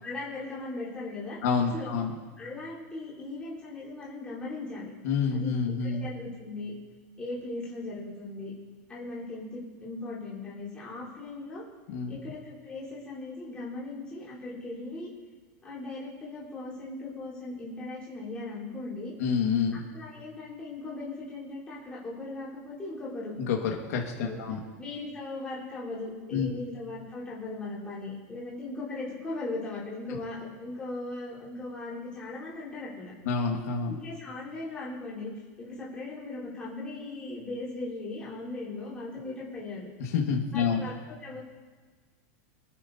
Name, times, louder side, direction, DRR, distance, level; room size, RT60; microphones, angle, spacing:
voice 1, 0.0-1.4 1.7-1.9 2.4-4.9 5.3-5.5 5.8-6.7 7.2-8.5 8.9-11.6 12.1-15.1 15.6-19.1 19.9-23.3 24.2-24.4 24.8-33.1 33.8-39.9 40.5-41.4, left 2 dB, 10° left, -9 dB, 4.2 m, -38 dB
voice 2, 1.4-2.1 5.0-6.1 11.9-12.2 19.2-19.8 23.4-24.6 26.3-26.5 33.3-33.9 40.0-40.9, left 6 dB, 65° left, 0 dB, 1.8 m, -28 dB
26.5 x 9.5 x 2.8 m, 1.4 s
supercardioid pair, 175°, 9 cm